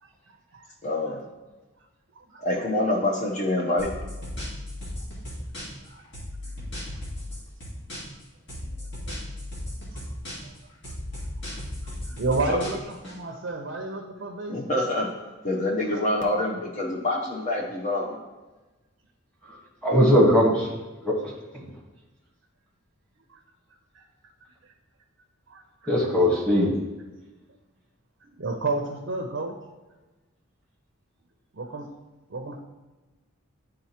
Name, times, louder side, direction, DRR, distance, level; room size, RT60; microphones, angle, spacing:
voice 1, 0.8-1.2 2.4-3.9 12.5-12.7 14.5-15.1 15.4-18.2, left 1 dB, 35° left, -1 dB, 0.7 m, -26 dB
sound 1, 3.8-5.9 6.1-8.2 8.5-10.6 10.8-13.1, left 1 dB, 55° left, 2.0 m, -36 dB
voice 2, 12.1-14.6 15.9-16.0 24.0-24.1 25.5-25.6 28.2-29.6 31.5-31.9 32.3-32.6, right 3 dB, 55° right, 3 dB, 0.6 m, -31 dB
voice 3, 19.8-20.7 21.0-21.6 25.9-26.7, equal, 5° left, -3 dB, 1.3 m, -20 dB
10.0 x 3.8 x 2.9 m, 1.2 s
head